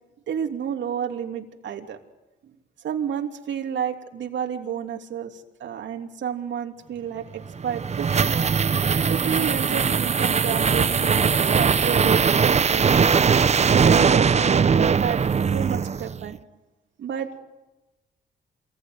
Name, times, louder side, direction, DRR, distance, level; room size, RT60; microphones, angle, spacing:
voice 1, 0.3-2.0 2.4-2.5 2.8-8.3 9.1-12.9 13.7-15.2 15.5-16.4 17.0-17.4, right 8 dB, 75° right, 3 dB, 3.1 m, -30 dB
sound 1, 7.4-16.3, right 6 dB, 35° right, 0.9 m, -20 dB
27.5 x 21.0 x 9.6 m, 1.1 s
cardioid pair, 105°, 19 cm